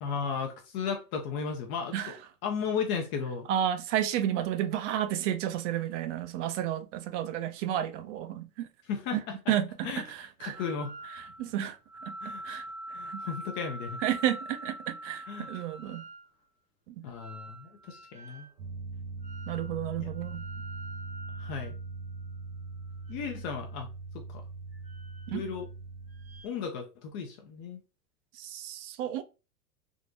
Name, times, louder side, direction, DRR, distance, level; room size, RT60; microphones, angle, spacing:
voice 1, 0.0-2.1 2.4-3.5 8.9-9.5 9.8-10.0 10.4-10.9 12.2-12.6 12.9-14.0 15.3-15.5 17.0-18.5 20.0-20.1 21.4-21.8 23.1-23.9 24.1-24.4 25.3-25.7 26.4-27.8, left 6 dB, 30° left, 0.3 m, -35 dB
voice 2, 3.5-8.7 9.1-9.2 9.5-10.6 11.1-11.8 12.0-12.2 12.4-12.7 13.1-13.2 14.0-16.0 16.9-17.1 19.5-20.5 25.3-25.4 28.3-29.2, right 11 dB, 50° right, 0.5 m, -32 dB
sound 1, 10.5-11.5 11.9-16.3 17.2-18.6 19.2-19.8 20.1-22.4 23.0-23.8 24.7-25.7 26.1-26.5, right 1 dB, 15° right, 0.8 m, -45 dB
sound 2, 18.6-26.4, right 3 dB, 85° right, 0.7 m, -41 dB
3.6 x 2.2 x 2.5 m
hypercardioid pair, 105°, 48 cm